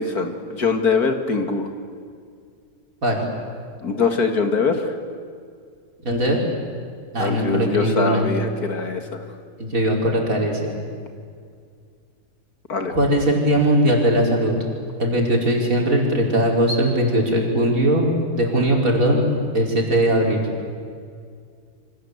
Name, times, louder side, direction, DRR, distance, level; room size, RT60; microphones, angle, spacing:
voice 1, 0.0-1.7 3.8-4.9 7.2-9.0 12.7-12.9, left 4 dB, 70° left, 6 dB, 2.6 m, -22 dB
voice 2, 6.0-6.4 7.1-8.3 9.6-10.7 12.9-14.5 15.0-20.4, right 1 dB, 55° right, 0 dB, 5.0 m, -20 dB
28.0 x 25.0 x 8.2 m, 2.2 s
omnidirectional pair, 1.7 m